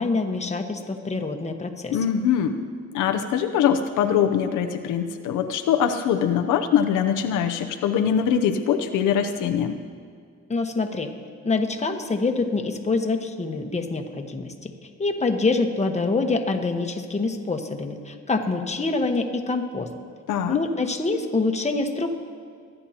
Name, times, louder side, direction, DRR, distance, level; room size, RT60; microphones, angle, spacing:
voice 1, 0.0-2.0 10.5-11.1 11.4-14.7 15.0-19.9 20.5-22.2, left 3 dB, 20° left, 4 dB, 1.2 m, -25 dB
voice 2, 1.9-2.6 2.9-9.8 20.3-20.6, left 8 dB, 90° left, 6 dB, 0.7 m, -22 dB
23.5 x 10.0 x 2.9 m, 2.1 s
cardioid pair, 90°, 30 cm